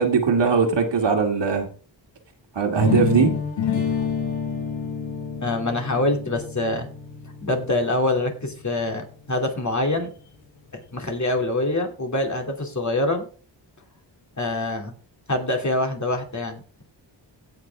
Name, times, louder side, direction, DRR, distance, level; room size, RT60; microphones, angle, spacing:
voice 1, 0.0-1.7 2.6-3.3, right 5 dB, 70° right, 4 dB, 2.4 m, -20 dB
sound 1, 2.8-8.7, left 6 dB, 75° left, 2.8 m, -28 dB
voice 2, 5.4-6.9 7.4-10.1 10.9-13.3 14.4-14.9 15.3-16.8, left 2 dB, 40° left, 3 dB, 2.9 m, -25 dB
16.5 x 6.1 x 3.6 m, 0.39 s
wide cardioid pair, 95°, 45 cm